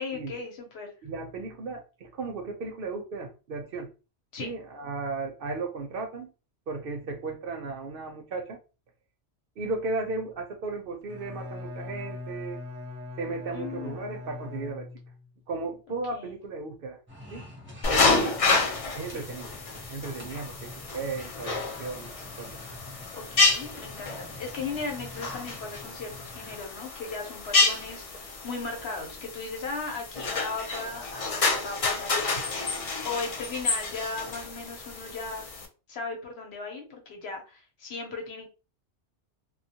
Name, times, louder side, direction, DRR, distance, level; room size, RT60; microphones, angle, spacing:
voice 1, 0.0-0.9 4.3-4.5 13.5-14.2 16.1-16.3 17.9-18.2 19.1-19.2 23.1-35.4 35.9-38.5, left 4 dB, 65° left, 2 dB, 1.0 m, -37 dB
voice 2, 1.0-3.9 4.4-6.3 6.7-8.6 9.6-12.6 13.2-14.9 15.5-17.0 17.3-17.4 17.9-18.4 18.9-19.5 19.9-22.6, right 3 dB, 60° right, 3 dB, 0.7 m, -35 dB
Bowed string instrument, 11.0-15.3, left 2 dB, 90° right, 0.9 m, -40 dB
sound 1, 17.1-26.6, left 1 dB, 15° right, 0.6 m, -47 dB
sound 2, 17.8-35.7, left 3 dB, 50° left, 0.4 m, -29 dB
2.3 x 2.2 x 2.7 m, 0.32 s
omnidirectional pair, 1.2 m